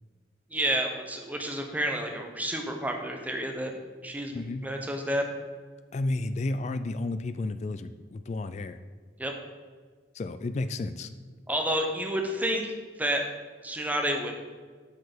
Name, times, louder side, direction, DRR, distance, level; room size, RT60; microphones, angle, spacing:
voice 1, 0.5-5.3 9.2-9.3 11.5-12.7 13.0-13.2 13.6-14.3, right 1 dB, 10° right, 2 dB, 0.9 m, -30 dB
voice 2, 4.3-4.7 5.9-8.8 10.1-11.1, left 2 dB, 40° left, 11 dB, 0.3 m, -32 dB
7.9 x 6.7 x 5.0 m, 1.5 s
head